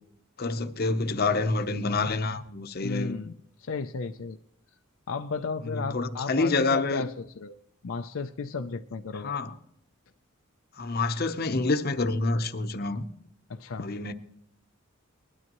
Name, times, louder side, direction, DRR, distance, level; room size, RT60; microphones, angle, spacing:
voice 1, 0.4-3.2 5.7-7.1 9.1-9.5 10.8-13.1 13.8-14.1, left 3 dB, 45° left, 0.8 m, -27 dB
voice 2, 2.8-4.4 5.1-7.5 7.8-9.3 13.5-13.9, left 4 dB, 70° left, 0.5 m, -34 dB
20.5 x 12.5 x 3.0 m
head